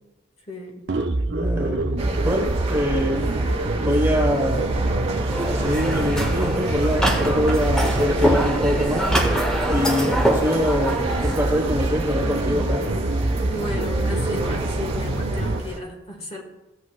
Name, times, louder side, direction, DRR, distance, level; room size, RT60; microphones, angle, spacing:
voice 1, 0.5-0.8 13.5-16.4, left 1 dB, 35° left, 0 dB, 1.8 m, -34 dB
sound 1, 0.9-15.6, right 2 dB, 70° right, 0.7 m, -25 dB
voice 2, 1.3-3.3 3.7-4.7 5.5-12.9, equal, 15° right, 0 dB, 1.4 m, -24 dB
sound 2, 2.0-15.8, right 1 dB, 30° right, 1.3 m, -30 dB
sound 3, 5.3-11.4, equal, 5° left, 1.1 m, -25 dB
16.0 x 8.3 x 2.5 m, 1.0 s
head